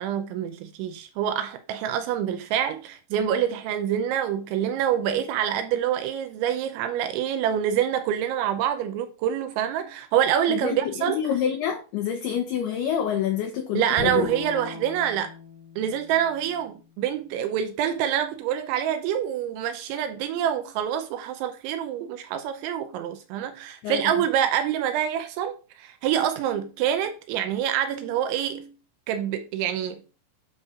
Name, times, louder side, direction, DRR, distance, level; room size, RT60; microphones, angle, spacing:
voice 1, 0.0-11.2 13.8-15.3 15.8-28.7 29.1-30.1, right 9 dB, 80° right, 2.8 m, -26 dB
voice 2, 10.5-14.3 23.8-24.2, left 9 dB, 85° left, 2.2 m, -27 dB
Bowed string instrument, 14.0-17.2, left 2 dB, 65° right, 2.8 m, -39 dB
12.0 x 5.6 x 2.4 m
omnidirectional pair, 5.8 m